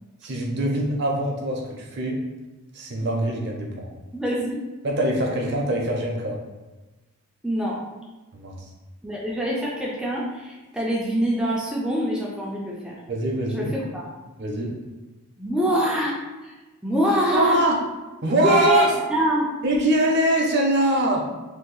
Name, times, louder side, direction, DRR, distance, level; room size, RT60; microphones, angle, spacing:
voice 1, 0.2-2.2 2.7-3.9 4.8-6.4 8.3-8.6 13.1-13.7 14.4-14.7 17.3-17.7 18.2-18.9 19.6-21.2, right 1 dB, 50° right, 0 dB, 0.6 m, -23 dB
voice 2, 4.1-4.6 7.4-7.8 9.0-13.0 13.5-14.1 15.4-16.2 16.4-16.6 16.8-17.6 18.4-19.5, equal, 5° right, -4 dB, 0.3 m, -24 dB
2.7 x 2.2 x 3.8 m, 1.1 s
head